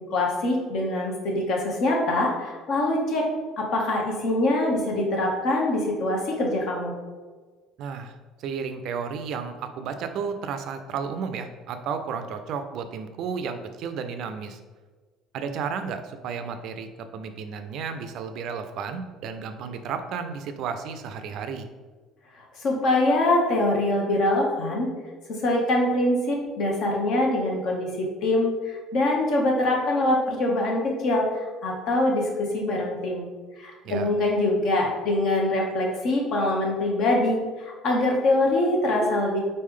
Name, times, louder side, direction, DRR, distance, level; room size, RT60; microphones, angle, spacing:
voice 1, 0.0-3.2 3.6-6.9 22.6-24.9 25.4-33.3 33.6-39.4, left 1 dB, 55° left, 0 dB, 1.1 m, -24 dB
voice 2, 7.8-8.1 8.4-14.6 15.3-21.7 33.8-34.1, right 6 dB, 60° right, 8 dB, 0.4 m, -33 dB
4.0 x 3.2 x 3.7 m, 1.4 s
cardioid pair, 145°, 0 cm